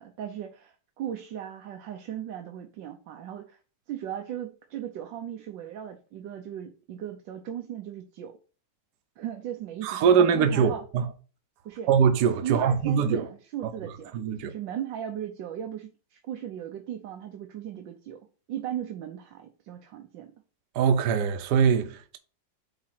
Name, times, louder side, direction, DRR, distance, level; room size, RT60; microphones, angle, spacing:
voice 1, 0.0-3.6 3.9-8.4 9.2-10.8 11.6-11.9 12.4-20.3, right 10 dB, 85° right, 1.5 m, -37 dB
voice 2, 9.8-11.1 11.9-13.3 14.1-14.5 20.7-22.2, right 7 dB, 70° right, 1.3 m, -22 dB
8.5 x 2.9 x 5.9 m
omnidirectional pair, 1.9 m